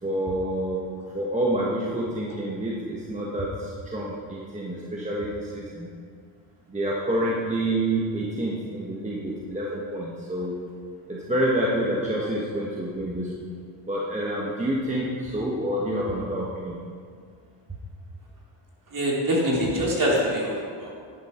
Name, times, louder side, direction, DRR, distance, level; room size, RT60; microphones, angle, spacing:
voice 1, 0.0-5.9 6.7-10.6 11.1-13.6 13.9-16.8, right 1 dB, 15° right, -4 dB, 1.4 m, -28 dB
voice 2, 18.9-20.9, equal, 40° right, -4 dB, 3.4 m, -24 dB
11.0 x 10.5 x 4.5 m, 2.1 s
cardioid pair, 115°, 47 cm